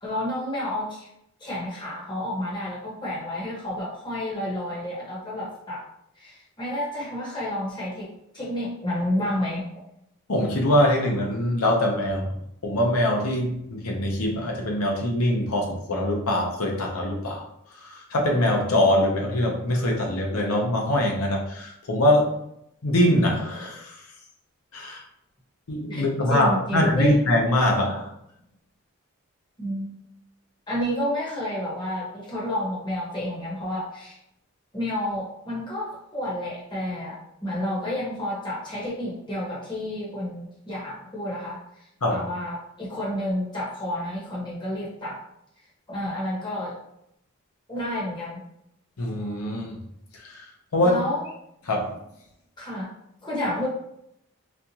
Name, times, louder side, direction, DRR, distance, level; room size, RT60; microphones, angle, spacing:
voice 1, 0.0-1.1 1.4-5.9 6.2-9.6 25.9-26.0 26.3-27.2 29.6-29.9 30.7-34.2 34.7-41.6 42.1-45.2 45.9-46.8 47.7-48.4 50.8-51.3 52.6-52.9 53.2-53.7, left 1 dB, 20° left, -6 dB, 1.0 m, -30 dB
voice 2, 10.3-12.3 12.6-17.4 17.8-22.3 22.8-24.0 24.7-25.0 25.7-28.1 42.0-42.2 49.0-49.8 50.1-50.5 50.7-51.0 51.7-51.9, left 1 dB, 90° left, 0 dB, 0.7 m, -23 dB
4.2 x 2.3 x 2.8 m, 0.76 s
head